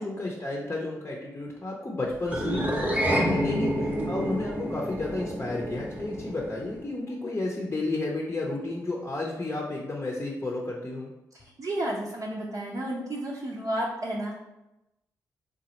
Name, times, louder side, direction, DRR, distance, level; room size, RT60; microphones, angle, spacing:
voice 1, 0.0-11.1, left 2 dB, 30° left, -1 dB, 0.7 m, -32 dB
sound 1, 2.3-6.8, equal, 15° right, 0.8 m, -29 dB
voice 2, 11.3-14.3, right 1 dB, 50° right, -5 dB, 0.6 m, -32 dB
3.9 x 2.3 x 2.9 m, 0.94 s
hypercardioid pair, 40°, 8 cm